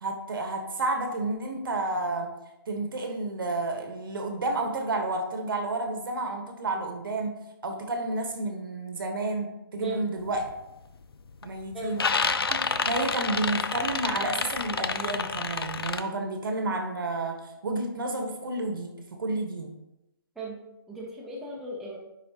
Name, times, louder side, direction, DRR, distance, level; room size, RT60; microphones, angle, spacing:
voice 1, 0.0-2.3 2.7-7.3 7.6-10.5 11.4-12.0 12.5-19.7, right 2 dB, 65° right, 4 dB, 1.3 m, -31 dB
sound 1, 10.3-10.5 11.0-11.5 11.7-16.0, left 5 dB, 90° left, 0.5 m, -29 dB
voice 2, 20.9-22.0, right 2 dB, 5° right, -5 dB, 0.9 m, -36 dB
9.4 x 4.2 x 2.9 m, 0.90 s
hypercardioid pair, 155°, 12 cm